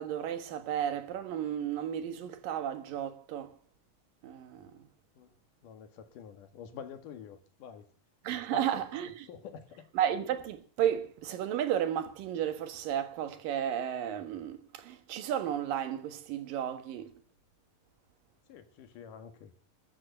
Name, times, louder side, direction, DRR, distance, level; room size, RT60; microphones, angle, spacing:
voice 1, 0.0-3.6 4.2-4.9 8.2-9.3 9.9-17.1, right 10 dB, 85° right, 3.2 m, -33 dB
voice 2, 5.2-7.9 8.5-8.9 9.3-9.9 18.5-19.5, left 7 dB, 70° left, 3.2 m, -47 dB
14.0 x 9.9 x 7.8 m
omnidirectional pair, 3.8 m